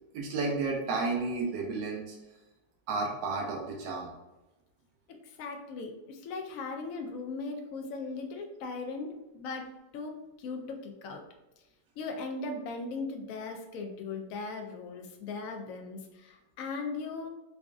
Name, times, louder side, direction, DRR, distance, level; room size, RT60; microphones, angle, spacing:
voice 1, 0.1-2.2 2.9-4.1, right 3 dB, 90° right, -1 dB, 1.3 m, -32 dB
voice 2, 5.1-9.7 9.9-11.2 12.0-17.3, left 3 dB, 75° left, 4 dB, 0.8 m, -38 dB
5.0 x 2.5 x 2.3 m, 1.0 s
omnidirectional pair, 1.9 m